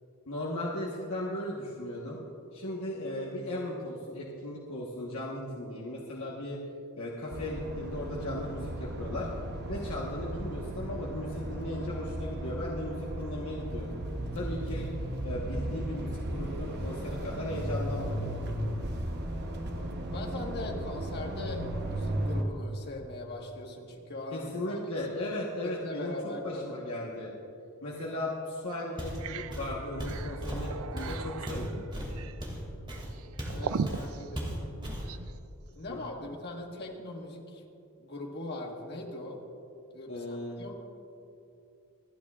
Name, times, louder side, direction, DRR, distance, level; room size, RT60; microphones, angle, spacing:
voice 1, 0.3-2.2 2.5-6.6 7.0-9.3 9.7-14.0 14.3-14.9 15.2-18.4 24.3-26.1 26.4-27.3 27.8-31.8 35.9-36.0 40.1-40.6, left 1 dB, 70° left, -4 dB, 1.3 m, -36 dB
sound 1, 7.3-22.4, right 1 dB, 50° right, 1.0 m, -35 dB
voice 2, 20.1-25.1 25.6-26.8 33.4-34.5 35.7-37.6 38.0-39.4 39.9-40.7, left 2 dB, 50° left, 1 dB, 1.5 m, -40 dB
sound 2, 27.9-28.1 28.5-28.6 29.0-35.3, right 5 dB, 65° right, 0.4 m, -39 dB
Walk footsteps, 29.0-29.3 29.5-33.6 33.9-34.1 34.4-35.1, equal, 20° right, 2.3 m, -36 dB
27.0 x 9.3 x 2.4 m, 2.6 s
head